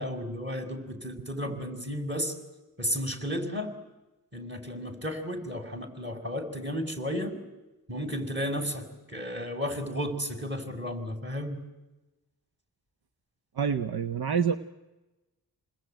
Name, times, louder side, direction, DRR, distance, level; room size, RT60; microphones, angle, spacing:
voice 1, 0.0-2.3 2.8-3.7 4.3-7.4 7.9-11.6, equal, 30° right, 4 dB, 5.7 m, -33 dB
voice 2, 13.6-14.6, right 7 dB, 70° right, 10 dB, 1.0 m, -27 dB
28.5 x 20.5 x 9.2 m, 1.1 s
cardioid pair, 50°, 39 cm